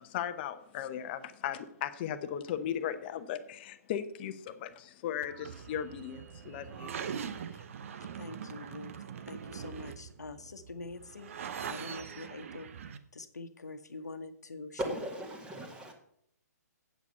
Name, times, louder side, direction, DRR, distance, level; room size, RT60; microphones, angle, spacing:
voice 1, 0.0-6.9, left 9 dB, 35° left, 0.9 m, -37 dB
sound 1, 5.2-13.0, right 7 dB, 55° right, 0.9 m, -42 dB
voice 2, 8.2-12.7 13.1-15.0, left 3 dB, 80° left, 1.2 m, -45 dB
voice 3, 14.8-15.9, equal, 10° right, 2.0 m, -37 dB
8.4 x 8.3 x 5.5 m
figure-of-eight pair, 130°, 9 cm